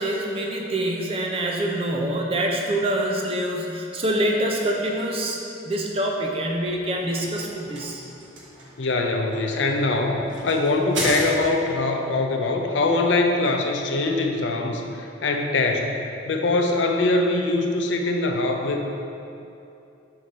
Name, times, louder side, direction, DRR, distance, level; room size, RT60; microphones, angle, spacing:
voice 1, 0.0-8.0, right 1 dB, 30° right, 0 dB, 0.6 m, -25 dB
sound 1, 6.7-11.8, right 1 dB, 90° right, 1.1 m, -34 dB
voice 2, 8.8-15.9 16.2-18.8, left 2 dB, 80° left, 3 dB, 0.5 m, -23 dB
6.2 x 3.8 x 4.1 m, 2.7 s
head